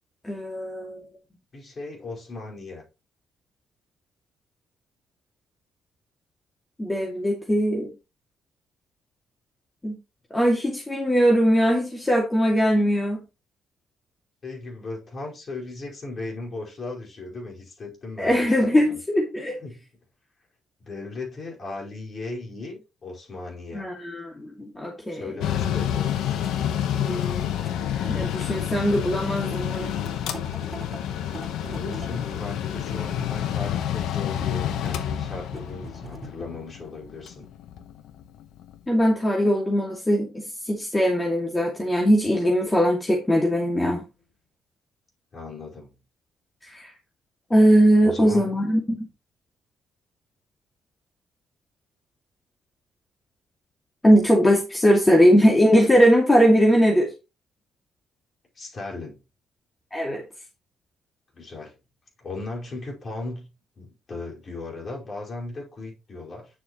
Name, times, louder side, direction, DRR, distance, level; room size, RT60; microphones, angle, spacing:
voice 1, 0.2-1.0 6.8-7.9 9.8-10.0 10.3-13.2 18.2-19.5 23.7-25.4 27.0-27.6 28.1-29.9 38.9-44.0 46.7-46.9 47.5-49.1 54.0-57.1 59.9-60.2, equal, 15° left, 2.4 m, -20 dB
voice 2, 1.5-2.8 14.4-19.0 19.6-19.9 20.9-23.8 25.1-26.5 31.6-37.5 45.3-45.9 48.0-48.6 58.5-59.2 61.3-61.7 62.2-63.5 63.8-66.5, left 3 dB, 45° left, 5.0 m, -37 dB
sound 1, 23.5-23.6 24.6-24.7 26.0-26.1 26.4-29.2 29.5-29.6 29.9-31.0 31.3-33.8 34.3-35.0 35.4-36.3, right 2 dB, 25° right, 4.0 m, -42 dB
Mechanical fan, 25.4-38.8, left 10 dB, 85° left, 1.1 m, -29 dB
9.7 x 6.9 x 3.1 m
cardioid pair, 90°, 0 cm